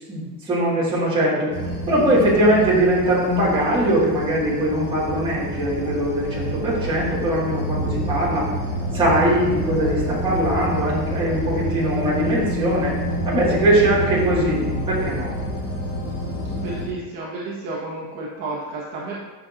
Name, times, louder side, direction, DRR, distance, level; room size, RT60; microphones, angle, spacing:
voice 1, 0.1-1.5 1.8-8.5 8.9-13.0 13.2-15.3, right 1 dB, 10° right, -9 dB, 2.0 m, -21 dB
sound 1, 1.5-16.9, equal, 75° left, 2.3 m, -28 dB
voice 2, 16.6-19.2, right 2 dB, 40° right, -6 dB, 1.4 m, -31 dB
10.5 x 6.3 x 2.6 m, 1.2 s
cardioid pair, 180°, 48 cm